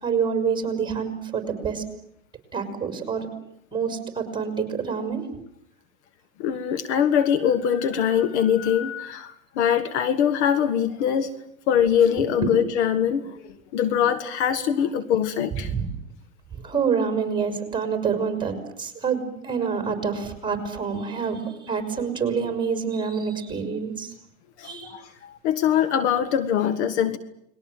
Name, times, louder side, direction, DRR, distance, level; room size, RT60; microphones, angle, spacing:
voice 1, 0.0-1.8 2.5-3.3 3.7-5.3 12.2-12.5 15.5-15.9 16.5-24.1 24.6-25.0, right 6 dB, 10° right, 6 dB, 5.5 m, -27 dB
voice 2, 6.4-11.3 11.7-15.7 24.6-27.2, left 8 dB, 55° left, 10 dB, 1.7 m, -23 dB
30.0 x 21.0 x 7.8 m, 0.74 s
hypercardioid pair, 105°, 42 cm